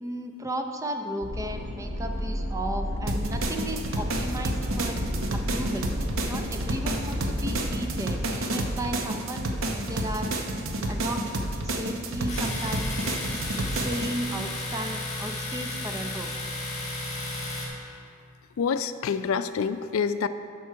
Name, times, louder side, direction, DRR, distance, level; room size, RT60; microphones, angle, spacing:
voice 1, 0.0-5.0 5.3-6.0 6.3-10.3 10.9-11.3 11.6-13.3 13.8-16.3, right 1 dB, 15° right, 4 dB, 0.5 m, -34 dB
sound 1, 1.2-7.7, equal, 85° right, 1.6 m, -33 dB
sound 2, 3.1-14.1, right 1 dB, 70° right, 0.8 m, -30 dB
Domestic sounds home sounds, 12.3-17.7, left 1 dB, 35° left, 1.9 m, -33 dB
voice 2, 18.6-20.3, left 6 dB, 75° left, 11 dB, 0.4 m, -27 dB
11.0 x 6.1 x 4.6 m, 2.5 s
head